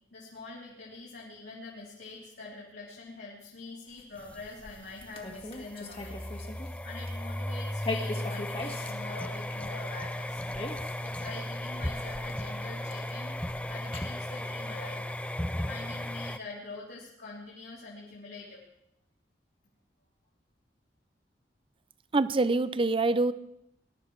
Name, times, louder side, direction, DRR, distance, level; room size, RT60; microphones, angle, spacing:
voice 1, 0.1-6.2 6.8-10.4 11.0-13.3 13.7-18.6, left 3 dB, 75° left, -6 dB, 3.4 m, -45 dB
sound 1, 3.9-6.8 7.1-7.3 7.7-14.0, left 2 dB, 35° left, 1.8 m, -41 dB
sound 2, 4.2-16.4, left 1 dB, 10° left, 0.5 m, -36 dB
voice 2, 22.1-23.3, right 3 dB, 30° right, 15 dB, 0.6 m, -25 dB
21.0 x 12.0 x 4.7 m, 0.78 s
head